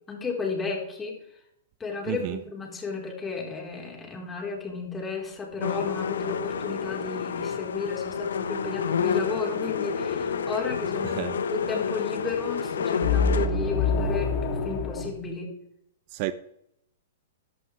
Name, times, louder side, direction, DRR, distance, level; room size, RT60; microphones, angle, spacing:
voice 1, 0.1-1.2 1.8-15.6, left 4 dB, 15° left, 4.1 m, -33 dB
voice 2, 2.0-2.4 11.0-11.4 16.1-16.3, right 16 dB, 45° right, 0.6 m, -31 dB
sound 1, 5.6-13.5, left 6 dB, 80° left, 1.1 m, -29 dB
sound 2, 10.1-10.9 13.0-15.1, left 4 dB, 45° left, 2.7 m, -26 dB
15.0 x 11.5 x 3.4 m
hypercardioid pair, 130°, 0 cm